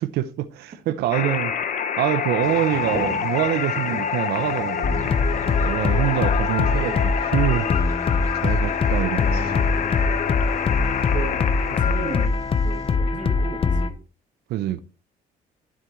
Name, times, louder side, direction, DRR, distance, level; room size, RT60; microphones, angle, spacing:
voice 1, 0.0-1.5 2.0-5.1 5.6-7.9 8.3-9.5 14.5-14.8, right 13 dB, 80° right, 0.7 m, -25 dB
sound 1, 1.1-12.3, left 8 dB, 50° left, 1.1 m, -27 dB
Bird vocalization bird call bird song, 2.4-12.9, right 1 dB, 20° right, 3.1 m, -41 dB
sound 2, 4.8-13.9, left 4 dB, 35° left, 0.8 m, -22 dB
voice 2, 6.5-7.1 11.1-14.0, right 5 dB, 50° right, 2.5 m, -36 dB
12.0 x 7.4 x 3.1 m
cardioid pair, 110°, 17 cm